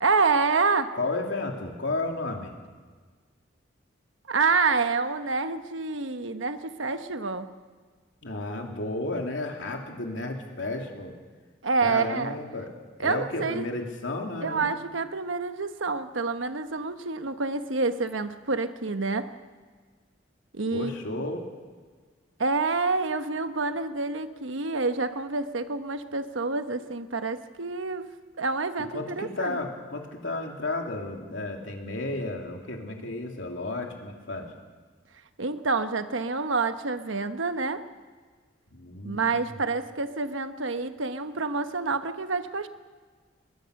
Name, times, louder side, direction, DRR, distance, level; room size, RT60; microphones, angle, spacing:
voice 1, 0.0-0.9 4.3-7.5 11.6-12.4 13.0-13.7 14.4-19.3 20.5-21.2 22.4-28.1 28.4-29.6 35.4-37.8 39.0-42.7, right 4 dB, 90° right, 9 dB, 1.2 m, -28 dB
voice 2, 0.9-2.5 8.2-11.1 11.8-12.7 13.0-14.7 20.7-21.4 28.9-34.5 38.7-39.5, left 2 dB, 80° left, 2 dB, 3.1 m, -33 dB
22.5 x 20.5 x 6.6 m, 1.5 s
head